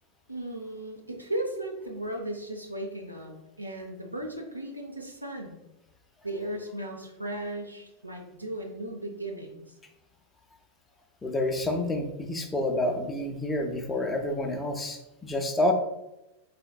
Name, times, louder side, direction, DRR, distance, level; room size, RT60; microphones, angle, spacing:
voice 1, 0.3-5.6 6.2-9.7, right 1 dB, 85° right, 1 dB, 0.6 m, -36 dB
voice 2, 11.2-15.7, left 1 dB, 10° left, 3 dB, 0.5 m, -28 dB
4.1 x 3.9 x 2.2 m, 0.92 s
figure-of-eight pair, 90°, 0 cm